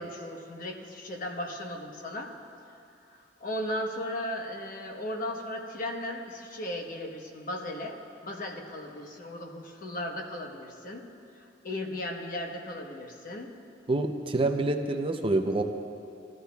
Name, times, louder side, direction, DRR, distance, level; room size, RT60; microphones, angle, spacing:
voice 1, 0.0-2.3 3.1-11.0 11.4-13.5, left 1 dB, 50° left, 2 dB, 1.1 m, -36 dB
voice 2, 13.9-15.6, right 2 dB, 30° right, 5 dB, 0.5 m, -27 dB
20.0 x 13.5 x 2.3 m, 2.5 s
head